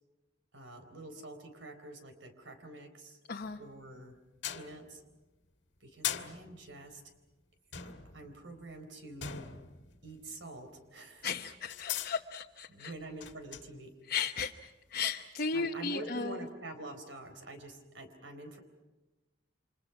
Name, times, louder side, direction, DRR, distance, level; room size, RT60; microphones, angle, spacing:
voice 1, 0.5-3.2 3.6-4.2 4.5-5.0 5.8-7.0 7.8-9.4 10.0-11.3 12.7-13.9 15.5-18.6, right 2 dB, 90° right, 7 dB, 4.1 m, -47 dB
voice 2, 3.3-3.6 11.2-12.9 14.1-16.4, left 5 dB, 55° left, 2 dB, 0.9 m, -35 dB
sound 1, 3.4-4.0 4.4-5.2 6.0-7.0 7.7-10.6 11.0-11.1 11.7-12.1 13.0-13.7 15.1-15.2, left 9 dB, 75° left, 1.7 m, -41 dB
29.5 x 26.5 x 5.9 m, 1.1 s
head